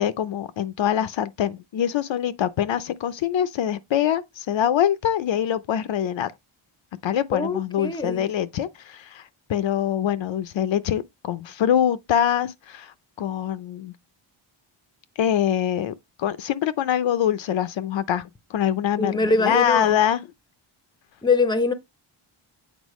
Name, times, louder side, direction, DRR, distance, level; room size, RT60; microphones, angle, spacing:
voice 1, 0.0-6.3 7.0-13.9 15.2-15.9 16.2-20.2, left 10 dB, 65° left, 0.6 m, -24 dB
voice 2, 7.3-8.2 19.0-20.0 21.2-21.7, left 3 dB, 10° left, 0.6 m, -23 dB
8.2 x 4.3 x 3.0 m
wide cardioid pair, 160°, 50 cm